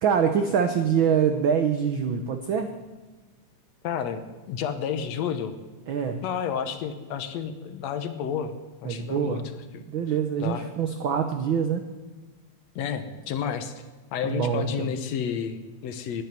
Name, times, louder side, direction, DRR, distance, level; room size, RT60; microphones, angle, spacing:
voice 1, 0.0-2.7 5.9-6.2 8.8-9.4 9.9-11.9 14.2-15.0, right 7 dB, 75° right, 7 dB, 1.1 m, -25 dB
voice 2, 3.8-5.6 6.2-8.5 8.8-9.4 9.7-9.8 10.4-10.7 12.8-13.7 14.1-16.2, left 7 dB, 70° left, 9 dB, 2.0 m, -31 dB
10.5 x 10.0 x 9.4 m, 1.3 s
omnidirectional pair, 3.4 m